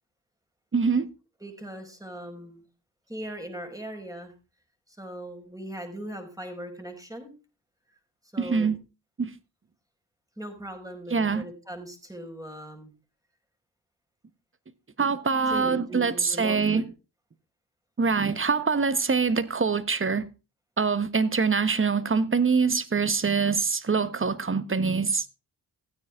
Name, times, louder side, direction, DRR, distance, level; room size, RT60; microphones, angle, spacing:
voice 1, 0.7-1.1 8.4-8.8 9.2-9.3 11.1-11.5 15.0-16.8 18.0-20.3 20.8-25.3, right 5 dB, 30° right, 1.3 m, -24 dB
voice 2, 1.4-2.6 3.1-4.3 4.9-7.3 8.3-8.7 10.4-12.9 15.5-16.8, right 1 dB, 10° right, 5.5 m, -39 dB
15.5 x 9.6 x 3.7 m
supercardioid pair, 45°, 42 cm